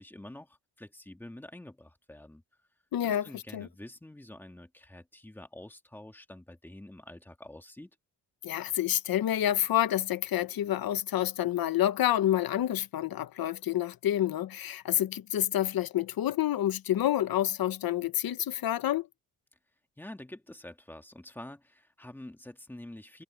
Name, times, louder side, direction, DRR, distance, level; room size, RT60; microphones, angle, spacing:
voice 1, 0.0-2.4 3.0-7.9 20.0-23.2, left 1 dB, 5° left, 1.7 m, -47 dB
voice 2, 2.9-3.2 3.5-3.7 8.4-19.1, left 12 dB, 65° left, 1.0 m, -28 dB
wide cardioid pair, 175°, 38 cm